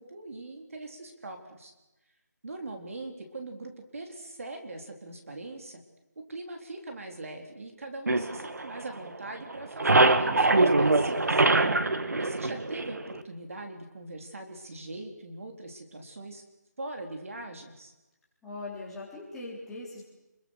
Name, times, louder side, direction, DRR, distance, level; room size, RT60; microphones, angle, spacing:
voice 1, 0.0-1.7 2.4-5.8 6.3-11.4 12.2-16.4 16.8-17.9, right 2 dB, 50° right, 3 dB, 4.0 m, -41 dB
sound 1, 8.1-9.2 9.5-13.2, right 2 dB, 65° right, 1.9 m, -23 dB
voice 2, 11.9-12.3 18.4-20.0, left 2 dB, 5° left, -8 dB, 4.0 m, -41 dB
29.0 x 23.0 x 6.7 m, 1.0 s
figure-of-eight pair, 170°, 10 cm